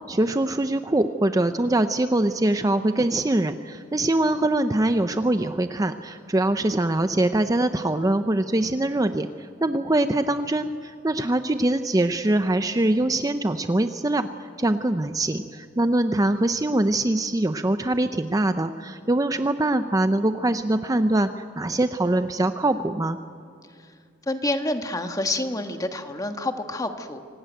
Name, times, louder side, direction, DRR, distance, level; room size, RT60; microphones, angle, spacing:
voice 1, 0.1-9.3 9.6-14.3 14.6-21.3 21.5-23.2, right 1 dB, 20° right, 9 dB, 0.6 m, -23 dB
voice 2, 24.3-27.2, left 2 dB, 20° left, 6 dB, 1.4 m, -28 dB
25.5 x 18.5 x 9.1 m, 2.2 s
head